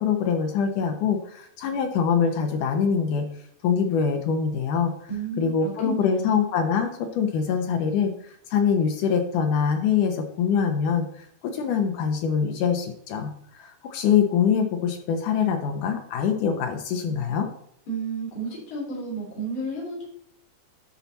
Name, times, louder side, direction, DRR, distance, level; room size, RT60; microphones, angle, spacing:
voice 1, 0.0-3.3 3.6-4.9 5.4-13.3 13.6-17.5, left 7 dB, 75° left, 5 dB, 1.9 m, -24 dB
voice 2, 5.1-6.4 17.9-20.0, right 3 dB, 35° left, -4 dB, 4.0 m, -32 dB
10.5 x 5.8 x 4.1 m, 0.69 s
omnidirectional pair, 4.6 m